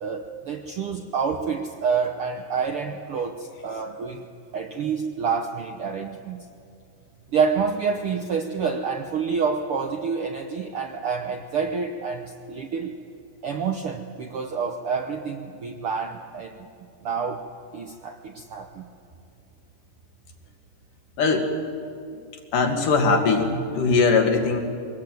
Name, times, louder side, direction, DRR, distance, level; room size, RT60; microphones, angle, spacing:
voice 1, 0.0-4.3 4.5-6.4 7.3-13.0 13.4-16.6 17.0-17.4 17.7-18.9, right 5 dB, 70° right, 4 dB, 1.3 m, -28 dB
voice 2, 21.2-21.5 22.5-24.6, left 4 dB, 75° left, 3 dB, 3.6 m, -20 dB
23.5 x 18.5 x 9.2 m, 2.5 s
omnidirectional pair, 3.8 m